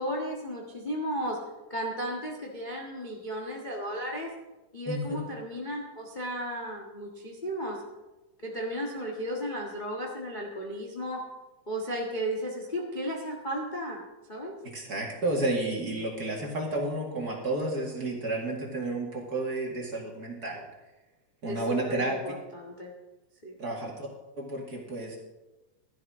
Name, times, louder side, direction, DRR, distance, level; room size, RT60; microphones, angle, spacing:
voice 1, 0.0-1.4 1.7-4.3 4.7-7.8 8.4-11.2 11.7-14.0 14.3-14.6 21.4-22.9 23.4-23.5, equal, 30° left, -2 dB, 0.8 m, -34 dB
voice 2, 4.9-5.2 14.6-20.6 21.4-22.4 23.6-24.1 24.4-25.2, right 2 dB, 35° right, -2 dB, 2.3 m, -31 dB
16.0 x 12.0 x 3.7 m, 1.1 s
omnidirectional pair, 3.6 m